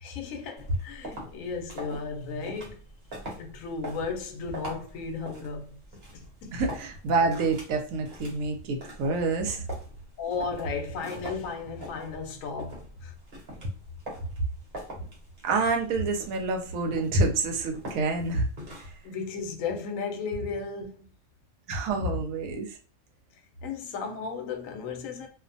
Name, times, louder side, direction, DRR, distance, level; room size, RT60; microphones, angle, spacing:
voice 1, 0.0-2.8 3.4-5.8 6.1-6.6 10.2-13.1 19.0-21.0 22.0-22.1 23.6-25.3, left 5 dB, 75° left, 1.0 m, -34 dB
sound 1, 0.6-19.1, right 1 dB, 50° right, 1.1 m, -43 dB
voice 2, 6.5-9.6 15.4-18.5 18.8-18.9 21.7-22.8, right 3 dB, 75° right, 1.0 m, -27 dB
2.5 x 2.1 x 2.5 m
omnidirectional pair, 1.4 m